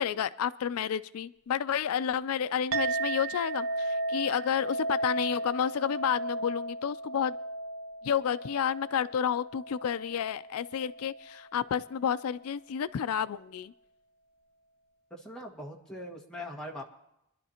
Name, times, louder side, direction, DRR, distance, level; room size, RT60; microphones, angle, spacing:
voice 1, 0.0-7.4 8.0-13.7, left 8 dB, 80° left, 14 dB, 0.4 m, -30 dB
Chink clink, 2.7-11.4, right 2 dB, 60° right, 0.8 m, -35 dB
voice 2, 15.1-16.8, left 1 dB, 5° left, -3 dB, 1.7 m, -41 dB
24.0 x 11.5 x 2.9 m, 0.84 s
head